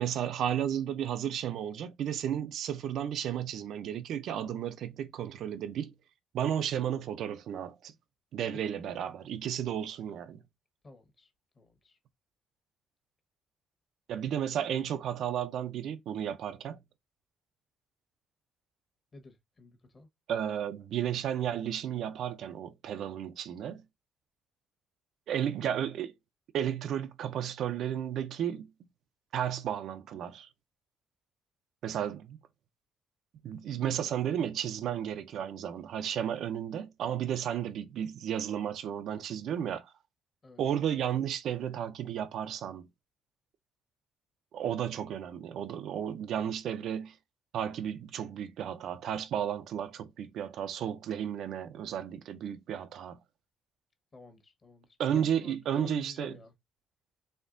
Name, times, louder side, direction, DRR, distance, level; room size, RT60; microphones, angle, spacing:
voice 1, 0.0-5.9 6.3-7.9 8.3-10.4 14.1-16.8 20.3-23.8 25.3-26.1 26.5-28.7 29.3-30.5 31.8-32.4 33.4-39.9 40.6-42.9 44.5-47.2 47.5-53.2 55.0-56.4, right 9 dB, 65° right, 0.5 m, -33 dB
voice 2, 10.8-11.3 11.5-12.0 19.1-20.1 40.4-40.6 54.1-56.5, left 2 dB, 30° left, 1.2 m, -50 dB
4.2 x 3.4 x 2.5 m
cardioid pair, 135°, 0 cm